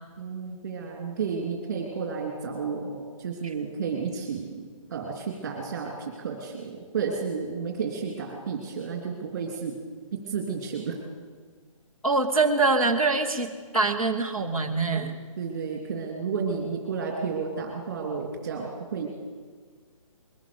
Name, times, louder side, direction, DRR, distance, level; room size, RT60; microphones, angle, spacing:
voice 1, 0.2-4.6 4.9-9.8 10.3-11.0 15.4-19.1, right 5 dB, 30° right, 1 dB, 3.1 m, -32 dB
voice 2, 12.0-15.1, right 3 dB, 5° left, -4 dB, 0.7 m, -24 dB
21.5 x 17.5 x 7.0 m, 1.5 s
hypercardioid pair, 175°, 17 cm